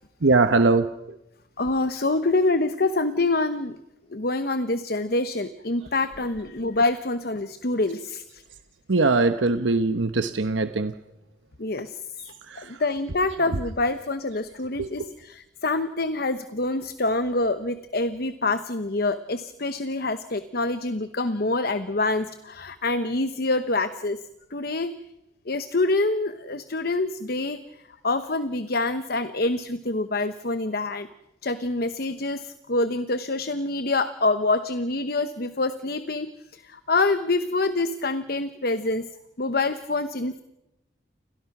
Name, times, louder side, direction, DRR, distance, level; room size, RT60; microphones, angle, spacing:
voice 1, 0.2-0.9 8.9-10.9 12.5-12.7 14.8-15.1, right 3 dB, 80° right, 9 dB, 1.0 m, -21 dB
voice 2, 1.6-3.8 4.1-8.4 11.6-12.0 12.6-24.2 24.5-24.9 25.5-27.6 28.0-31.1 31.4-39.1 39.4-40.4, left 2 dB, 55° left, 11 dB, 1.0 m, -26 dB
29.5 x 22.5 x 6.0 m, 0.91 s
head